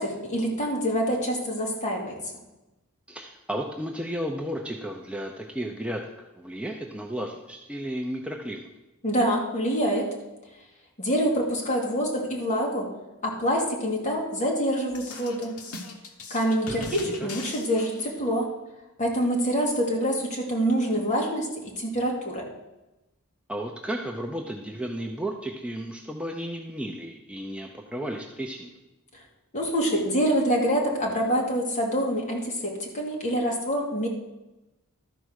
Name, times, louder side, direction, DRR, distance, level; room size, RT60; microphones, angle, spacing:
voice 1, 0.0-2.1 9.0-10.1 11.0-12.9 13.2-15.6 16.3-18.5 19.0-22.4 29.5-34.1, equal, 35° left, -1 dB, 2.1 m, -26 dB
voice 2, 3.1-8.7 16.7-17.3 23.5-28.8, equal, 5° right, 1 dB, 0.6 m, -34 dB
sound 1, 14.9-18.3, left 3 dB, 75° left, 1.2 m, -40 dB
12.5 x 4.7 x 6.4 m, 1.0 s
head